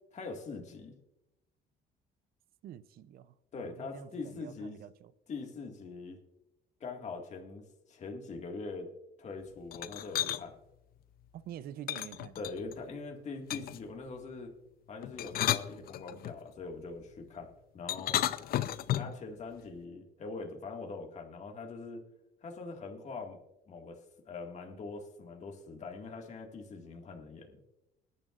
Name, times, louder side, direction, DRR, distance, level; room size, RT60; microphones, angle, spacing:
voice 1, 0.1-0.9 3.5-4.8 5.3-6.2 6.8-8.9 9.2-10.5 12.4-14.5 14.9-18.2 18.9-22.0 22.4-23.4 23.7-27.6, left 3 dB, 45° left, 2.0 m, -43 dB
voice 2, 2.6-5.1 11.3-12.4, right 11 dB, 65° right, 0.6 m, -47 dB
sound 1, 9.7-10.4 11.9-12.8 13.5-13.9 15.0-16.4 17.9-19.2, left 12 dB, 60° left, 0.6 m, -33 dB
20.5 x 10.5 x 2.5 m
cardioid pair, 110°, 17 cm